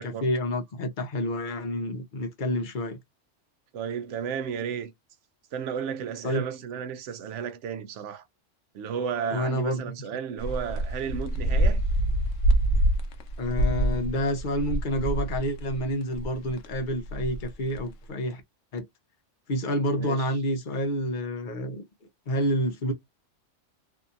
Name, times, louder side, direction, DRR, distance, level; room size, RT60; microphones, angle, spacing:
voice 1, 0.0-3.0 6.2-6.4 9.3-9.9 13.4-18.4 18.7-18.9 19.5-21.8 22.3-22.9, equal, 50° left, 0.8 m, -28 dB
voice 2, 3.7-4.9 5.5-8.2 8.7-11.8 20.0-20.3, right 7 dB, 80° right, 0.9 m, -33 dB
sound 1, 10.4-15.8 16.1-17.8, right 1 dB, 85° left, 1.0 m, -26 dB
2.7 x 2.6 x 2.4 m
omnidirectional pair, 1.2 m